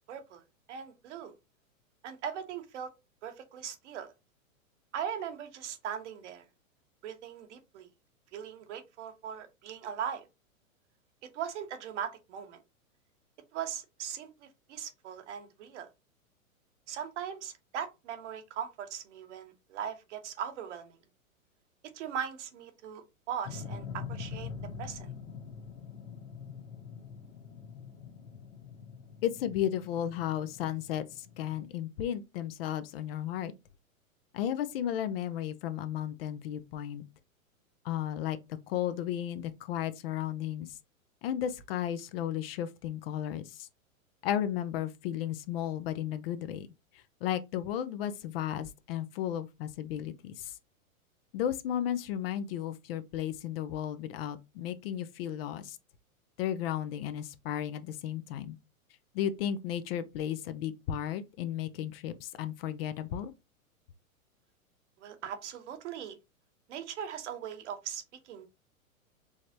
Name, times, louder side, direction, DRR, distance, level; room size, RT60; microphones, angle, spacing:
voice 1, 0.1-0.4 0.7-1.3 2.0-2.9 3.2-4.1 4.9-6.4 7.0-7.9 8.3-10.3 11.3-12.6 13.5-15.9 16.9-21.0 21.9-24.5 24.8-25.1 65.0-66.2 66.7-68.5, right 8 dB, 55° right, 1.2 m, -39 dB
sound 1, 23.4-31.7, left 6 dB, 75° left, 1.4 m, -44 dB
voice 2, 29.2-33.5 34.3-37.0 37.8-38.4 38.7-40.8 41.2-43.7 44.2-46.7 46.9-50.6 51.3-55.8 56.4-58.6 59.1-63.3, left 10 dB, 45° left, 0.6 m, -34 dB
4.8 x 3.2 x 2.7 m
hypercardioid pair, 110°, 42 cm